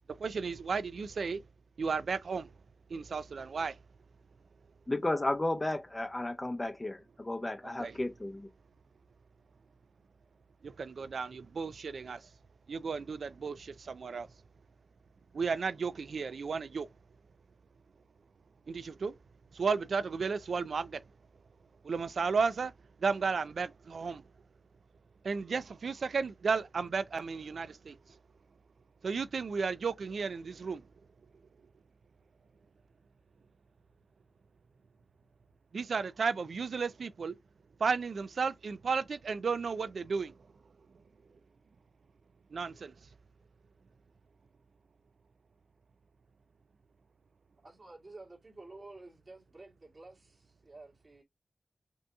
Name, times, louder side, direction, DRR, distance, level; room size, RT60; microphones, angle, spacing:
voice 1, 0.1-1.4 1.8-2.5 2.9-3.8 7.8-8.0 10.6-12.3 12.7-14.3 15.3-16.9 18.7-19.2 19.5-21.0 21.8-22.7 23.0-24.2 25.2-28.2 29.0-30.8 35.7-37.4 37.8-40.3 42.5-42.9, right 5 dB, 85° right, 0.4 m, -33 dB
voice 2, 4.9-8.5, left 2 dB, 25° left, 0.6 m, -33 dB
voice 3, 47.6-51.2, right 2 dB, 45° right, 2.1 m, -51 dB
5.3 x 2.8 x 2.3 m
wide cardioid pair, 120°, 0 cm